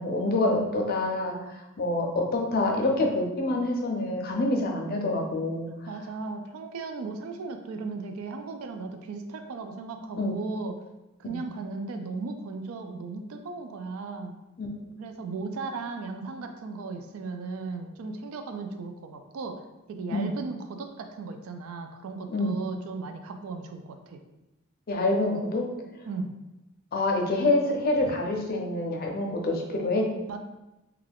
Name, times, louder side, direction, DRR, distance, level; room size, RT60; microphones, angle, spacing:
voice 1, 0.0-1.4 1.8-5.9 10.2-10.3 11.2-11.4 14.6-14.7 20.1-20.3 22.3-22.5 24.9-25.7 26.9-30.0, left 2 dB, 45° left, 1 dB, 0.5 m, -26 dB
voice 2, 5.9-10.8 11.2-14.3 15.0-19.6 19.9-24.2 26.1-26.3 30.3-30.4, right 4 dB, 70° right, 6 dB, 0.3 m, -36 dB
2.3 x 2.3 x 3.3 m, 0.98 s
head